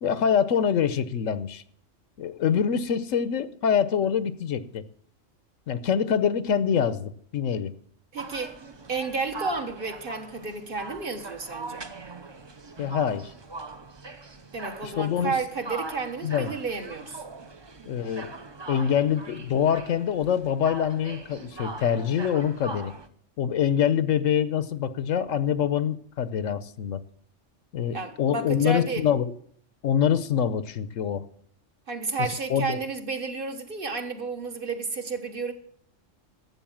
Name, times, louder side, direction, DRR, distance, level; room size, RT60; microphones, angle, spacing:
voice 1, 0.0-1.6 2.2-4.8 5.7-7.7 12.8-13.3 14.8-15.3 16.2-16.5 17.9-18.3 18.7-22.9 23.4-27.0 27.7-29.3 29.8-31.2 32.2-32.8, left 8 dB, 80° left, 1.2 m, -25 dB
voice 2, 8.1-8.6 8.9-11.8 14.5-17.2 27.9-29.1 31.9-35.5, right 4 dB, 45° right, 1.4 m, -31 dB
sound 1, 8.2-23.1, right 3 dB, 30° right, 0.6 m, -41 dB
12.5 x 8.0 x 7.3 m
omnidirectional pair, 1.3 m